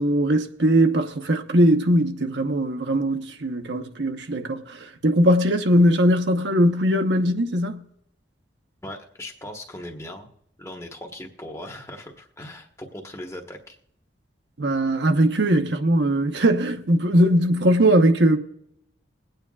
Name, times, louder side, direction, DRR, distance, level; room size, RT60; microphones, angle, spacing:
voice 1, 0.0-7.8 14.6-18.4, right 1 dB, 70° right, 1.0 m, -20 dB
voice 2, 8.8-10.3 10.6-13.8, left 1 dB, 15° left, 1.4 m, -39 dB
22.0 x 9.1 x 2.4 m
head